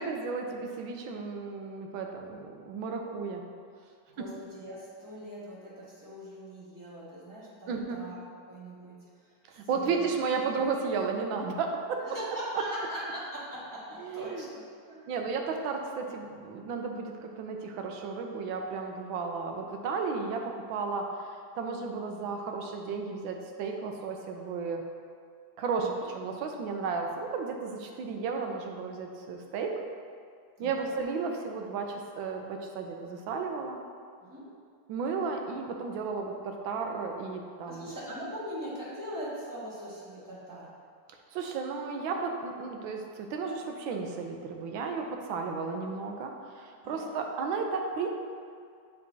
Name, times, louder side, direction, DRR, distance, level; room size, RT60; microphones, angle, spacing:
voice 1, 0.0-3.4 4.2-4.3 7.7-8.0 9.5-12.2 12.5-12.6 14.0-14.5 15.1-24.8 25.6-29.8 30.6-33.8 34.9-37.9 41.3-48.1, right 4 dB, 90° right, 3 dB, 1.4 m, -33 dB
voice 2, 4.1-8.2 8.5-9.0 9.6-10.1 12.0-14.6 14.9-15.1 25.8-26.1 30.6-30.9 34.3-34.5 37.7-40.7 46.8-47.1, equal, 10° right, -9 dB, 1.3 m, -41 dB
9.6 x 4.1 x 2.7 m, 2.2 s
omnidirectional pair, 2.1 m